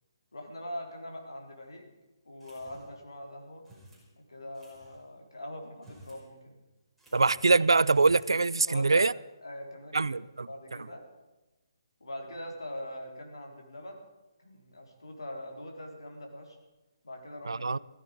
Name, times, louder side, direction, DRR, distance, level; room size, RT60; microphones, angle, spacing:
voice 1, 0.3-1.9 2.2-3.6 4.2-6.6 7.1-7.3 8.7-9.1 9.4-10.2 10.5-11.1 12.0-14.0 14.4-16.6 17.0-17.8, left 1 dB, 80° left, 3.9 m, -42 dB
sound 1, 2.4-3.1 3.6-4.1 4.5-5.0 5.7-6.2 6.5-6.6 7.0-7.5 7.8-8.3, equal, ahead, 5.1 m, -54 dB
voice 2, 7.1-9.1 9.9-10.5 17.5-17.8, right 3 dB, 80° right, 0.4 m, -24 dB
15.5 x 14.5 x 5.2 m
figure-of-eight pair, 145°, 2 cm